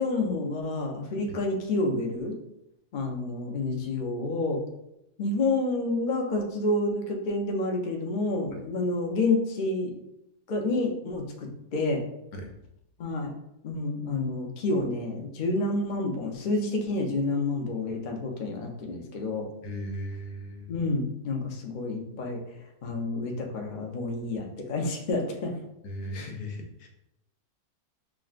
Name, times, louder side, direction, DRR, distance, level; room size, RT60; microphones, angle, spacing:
voice 1, 0.0-2.4 2.9-4.6 5.2-9.9 10.5-12.0 13.0-13.4 13.6-19.5 20.7-22.4 22.8-25.6, left 2 dB, 60° left, 1 dB, 0.5 m, -29 dB
voice 2, 19.6-20.7 25.8-26.9, equal, 85° left, 3 dB, 1.2 m, -37 dB
6.1 x 2.1 x 2.4 m, 0.83 s
omnidirectional pair, 1.7 m